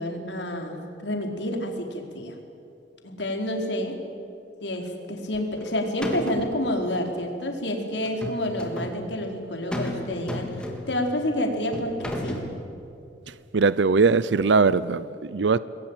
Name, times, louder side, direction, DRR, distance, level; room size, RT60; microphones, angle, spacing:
voice 1, 0.0-2.3 3.0-4.0 4.6-12.4, left 1 dB, 70° left, 4.4 m, -29 dB
sound 1, 5.3-5.7 6.0-6.6 8.0-9.0 9.7-10.0 10.3-11.0 11.7-12.5, left 1 dB, 5° left, 3.8 m, -32 dB
voice 2, 13.3-15.6, right 4 dB, 75° right, 0.6 m, -21 dB
27.5 x 21.5 x 9.1 m
head